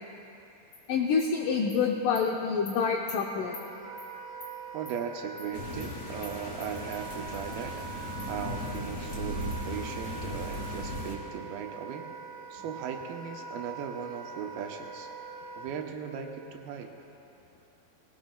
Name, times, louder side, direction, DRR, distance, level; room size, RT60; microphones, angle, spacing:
Animal, 0.7-0.8 1.2-1.3 1.7-1.8 2.2-2.3 2.7-2.8 3.1-3.2 3.5-3.7 4.0-4.1 4.4-4.5 4.9-5.0 5.4-5.5 5.8-5.9 6.2-6.3 6.6-7.0 7.3-7.4 7.8-7.9 8.2-8.3 8.7-8.8 9.1-9.2 9.5-9.6, left 5 dB, 65° left, 3.2 m, -45 dB
voice 1, 0.9-3.6, left 5 dB, 85° left, 2 dB, 1.8 m, -27 dB
Wind instrument woodwind instrument, 3.4-15.7, right 5 dB, 50° right, 3.8 m, -43 dB
voice 2, 4.7-7.7 8.3-12.1 12.5-15.1 15.5-16.9, right 7 dB, 80° right, 3 dB, 2.5 m, -38 dB
sound 1, 5.5-11.2, left 1 dB, 40° left, 1.1 m, -37 dB
20.0 x 17.5 x 2.2 m, 2.9 s
omnidirectional pair, 4.5 m